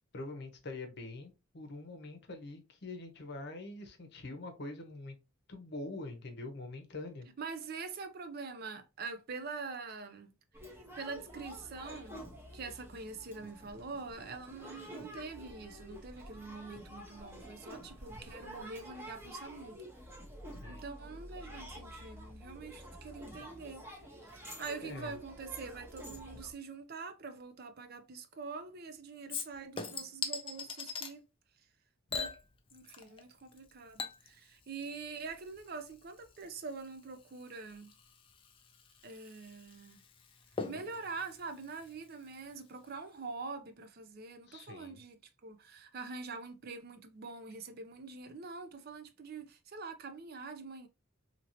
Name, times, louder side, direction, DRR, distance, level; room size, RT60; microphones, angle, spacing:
voice 1, 0.1-5.2 5.5-7.3 20.6-20.8 24.8-25.1 44.5-45.0, left 2 dB, 50° left, 0.7 m, -44 dB
voice 2, 7.4-10.3 10.6-12.2 12.5-19.7 20.7-23.8 24.2-31.2 32.1-32.3 32.7-37.9 39.0-40.0 40.7-50.9, right 4 dB, 45° right, 0.5 m, -45 dB
sound 1, 10.5-26.5, equal, 10° right, 0.8 m, -49 dB
Chink clink / Liquid, 29.3-31.1 32.1-33.2 33.5-42.5 42.9-43.0, left 5 dB, 25° left, 0.3 m, -44 dB
2.8 x 2.7 x 2.8 m
head